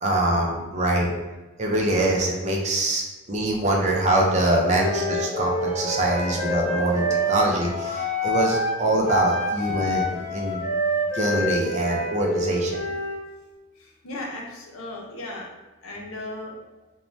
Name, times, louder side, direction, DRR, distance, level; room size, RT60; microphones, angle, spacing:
voice 1, 0.0-1.1 1.6-10.0 10.3-10.6 11.1-12.8, right 1 dB, 35° right, -1 dB, 0.4 m, -24 dB
Mallet percussion, 4.3-9.9 10.2-10.3, right 2 dB, 15° left, 0.5 m, -37 dB
Wind instrument woodwind instrument, 4.7-8.8 9.0-13.2, equal, 55° left, 0.8 m, -27 dB
voice 2, 13.8-15.5 15.8-16.6, left 2 dB, 85° left, 0 dB, 0.6 m, -36 dB
3.1 x 2.2 x 2.6 m, 1.1 s
head